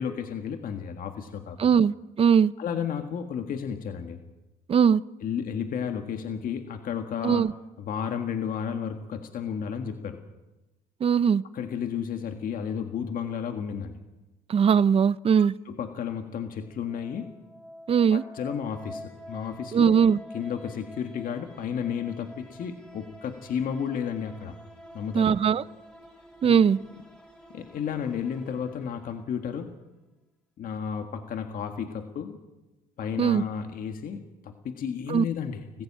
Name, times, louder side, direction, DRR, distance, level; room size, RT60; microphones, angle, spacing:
voice 1, 0.0-1.8 2.6-4.2 5.2-7.4 7.8-10.2 11.5-14.0 15.7-17.3 18.1-20.0 20.3-24.6 24.9-25.3 26.4-26.6 27.5-29.7 30.6-32.4 33.0-35.8, left 7 dB, 55° left, 1.7 m, -32 dB
voice 2, 1.6-2.5 4.7-5.0 7.2-7.5 11.0-11.4 14.5-15.5 17.9-18.2 19.7-20.2 25.1-25.6 26.4-26.8 33.2-33.4 35.1-35.2, right 7 dB, 35° right, 0.6 m, -20 dB
sound 1, 16.7-29.7, left 1 dB, 5° left, 4.6 m, -48 dB
21.0 x 15.0 x 8.8 m
cardioid pair, 110°, 17 cm